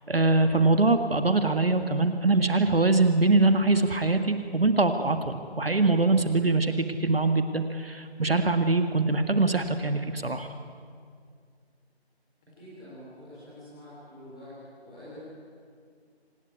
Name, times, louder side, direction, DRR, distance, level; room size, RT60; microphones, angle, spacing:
voice 1, 0.1-10.5, right 3 dB, 60° right, 8 dB, 1.7 m, -23 dB
voice 2, 12.6-14.5 14.8-15.2, left 1 dB, 5° left, -10 dB, 4.3 m, -46 dB
26.0 x 18.0 x 9.6 m, 2.1 s
figure-of-eight pair, 180°, 33 cm